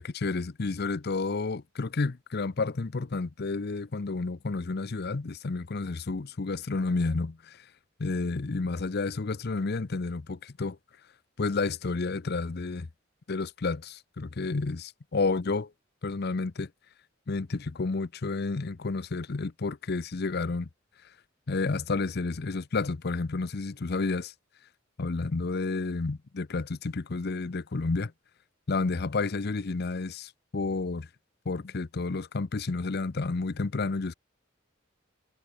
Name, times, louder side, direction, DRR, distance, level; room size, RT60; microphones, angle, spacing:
voice 1, 0.0-7.6 8.0-10.8 11.4-12.9 13.3-15.7 16.0-16.7 17.3-20.7 21.5-24.3 25.0-28.1 28.7-31.1 31.5-34.1, left 3 dB, 50° left, 0.6 m, -30 dB
head